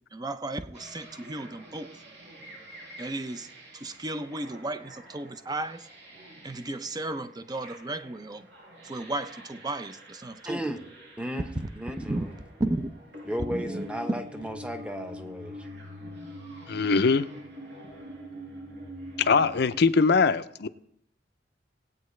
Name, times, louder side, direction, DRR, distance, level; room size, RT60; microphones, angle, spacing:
voice 1, 0.1-1.9 3.0-3.5 3.7-5.9 6.4-8.5 8.8-10.7 12.0-12.2 12.6-12.9 13.5-13.9, right 2 dB, 20° right, 0.6 m, -34 dB
sound 1, 0.7-19.8, equal, 75° right, 5.5 m, -46 dB
voice 2, 10.4-10.8 11.2-11.5 11.7-12.3 13.2-15.6, equal, 5° right, 1.0 m, -34 dB
voice 3, 16.7-17.3 19.2-20.7, left 4 dB, 60° left, 0.5 m, -22 dB
18.5 x 9.0 x 3.2 m
head